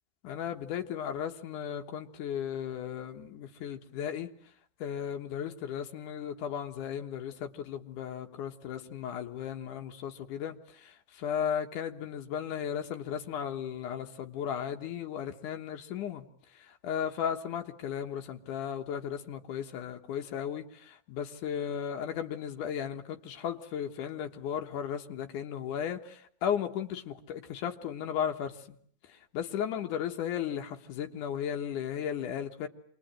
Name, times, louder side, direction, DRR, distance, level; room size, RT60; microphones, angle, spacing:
voice 1, 0.2-4.3 4.8-16.3 16.6-28.8 29.1-32.7, left 9 dB, 85° left, 5 dB, 2.9 m, -35 dB
27.0 x 21.5 x 9.0 m, 0.63 s
omnidirectional pair, 3.6 m